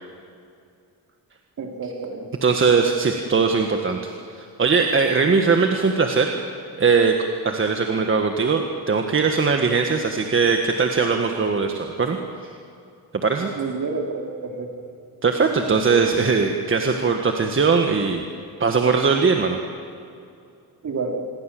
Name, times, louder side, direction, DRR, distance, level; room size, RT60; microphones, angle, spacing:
voice 1, 1.6-2.3 13.5-14.8 20.8-21.2, right 4 dB, 50° right, 2 dB, 3.7 m, -29 dB
voice 2, 2.4-6.3 6.8-7.2 7.4-12.2 13.2-13.5 15.2-18.3 18.6-19.6, right 5 dB, 30° right, 3 dB, 1.6 m, -20 dB
27.5 x 21.5 x 7.7 m, 2.5 s
wide cardioid pair, 145°, 38 cm